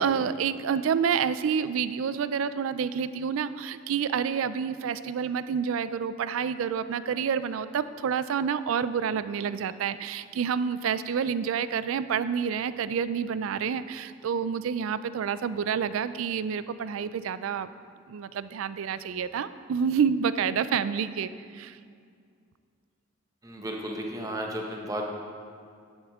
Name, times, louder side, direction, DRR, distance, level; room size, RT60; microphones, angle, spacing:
voice 1, 0.0-17.7 18.1-21.8, right 7 dB, 90° right, 14 dB, 0.3 m, -28 dB
voice 2, 23.4-25.0, right 1 dB, 20° right, 1 dB, 0.9 m, -33 dB
10.5 x 8.1 x 3.5 m, 2.3 s
head